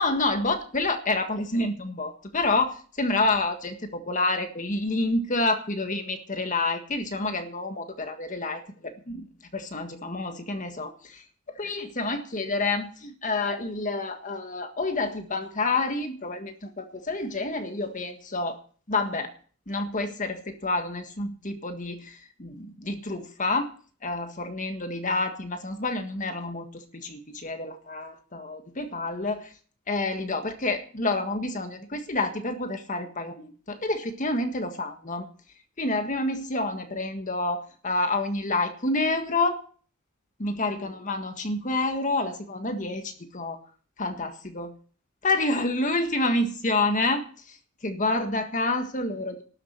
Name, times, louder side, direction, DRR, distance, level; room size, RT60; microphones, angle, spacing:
voice 1, 0.0-9.3 9.5-11.2 11.6-18.6 18.9-19.3 19.7-23.7 24.0-29.5 29.9-35.3 35.8-39.6 40.4-43.6 44.0-44.7 45.2-47.6 47.8-49.4, left 2 dB, 40° left, 6 dB, 1.7 m, -28 dB
12.5 x 7.6 x 9.2 m, 0.42 s
head